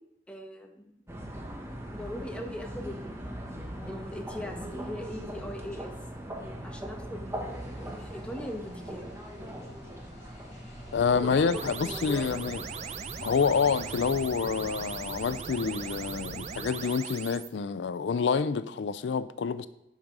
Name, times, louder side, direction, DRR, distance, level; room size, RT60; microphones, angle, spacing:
voice 1, 0.3-0.9 1.9-3.5 3.8-5.9 6.6-9.1 11.1-12.4, left 1 dB, 5° left, 1.0 m, -40 dB
sound 1, 1.1-14.7, equal, 15° right, 1.2 m, -41 dB
sound 2, 7.5-16.9, equal, 45° left, 3.7 m, -50 dB
sound 3, 10.7-17.5, right 5 dB, 40° right, 0.5 m, -39 dB
voice 2, 10.9-12.6 13.2-19.7, left 5 dB, 85° left, 0.4 m, -28 dB
9.3 x 5.0 x 6.0 m
head